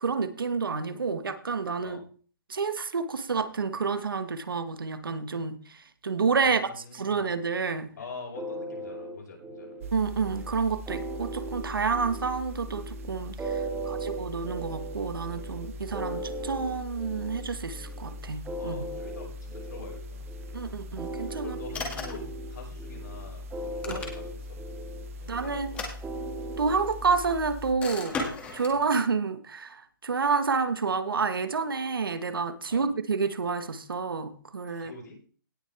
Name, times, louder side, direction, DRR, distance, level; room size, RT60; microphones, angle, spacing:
voice 1, 0.0-2.0 2.5-7.9 9.9-18.9 20.5-21.6 23.9-24.0 25.3-25.9 26.6-28.2 28.5-34.9, right 5 dB, 80° right, 10 dB, 1.6 m, -29 dB
voice 2, 6.4-7.3 8.0-9.8 13.6-14.3 18.6-20.3 21.4-24.6 25.2-25.9 28.7-28.9 32.7-32.9 34.7-35.2, left 4 dB, 60° left, -1 dB, 5.9 m, -45 dB
sound 1, 8.3-27.2, right 2 dB, 10° right, 1.7 m, -39 dB
sound 2, 9.8-27.7, left 2 dB, 40° right, 1.3 m, -41 dB
sound 3, 21.7-22.3 23.6-24.5 25.6-26.6 27.8-28.8, left 3 dB, 10° left, 2.2 m, -36 dB
18.0 x 6.4 x 3.5 m, 0.41 s
hypercardioid pair, 160°, 12 cm